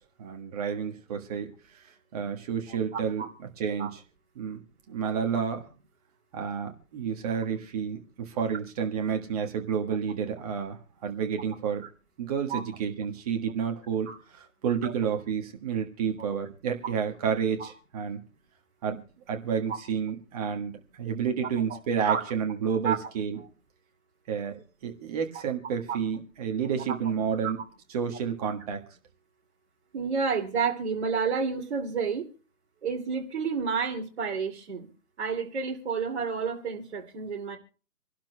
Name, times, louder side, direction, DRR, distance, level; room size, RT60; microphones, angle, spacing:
voice 1, 0.2-1.5 2.1-3.2 3.6-4.0 4.3-4.6 4.9-5.7 6.3-11.8 12.2-18.2 18.8-19.0 19.3-23.4 24.3-27.6 27.9-28.8, right 7 dB, 25° right, 1.5 m, -30 dB
voice 2, 2.9-3.3 3.8-3.9 12.5-12.6 14.1-14.2 14.8-14.9 17.6-17.7 21.7-21.8 22.0-22.2 22.8-23.0 25.9-26.0 29.9-32.3 32.8-34.9 35.2-37.6, right 6 dB, 45° right, 2.8 m, -30 dB
27.0 x 12.0 x 2.3 m
figure-of-eight pair, 150°, 47 cm